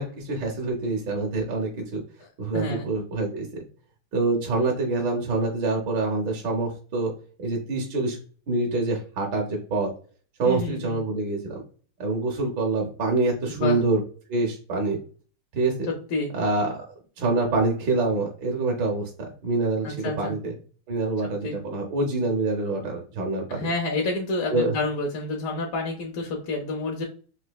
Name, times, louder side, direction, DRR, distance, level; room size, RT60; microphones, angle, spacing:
voice 1, 0.0-2.0 2.4-3.5 4.1-7.1 7.4-8.2 8.5-9.9 10.4-11.6 12.0-14.0 14.3-15.0 15.5-15.7 16.3-19.1 19.4-20.5 20.9-23.7 24.5-24.7, right 3 dB, 65° right, -1 dB, 1.4 m, -26 dB
voice 2, 2.5-2.9 10.4-11.0 13.5-13.8 15.9-16.3 19.8-20.3 21.2-21.6 23.5-27.0, left 2 dB, 75° left, 0 dB, 1.4 m, -29 dB
4.2 x 2.6 x 2.2 m, 0.40 s
omnidirectional pair, 2.3 m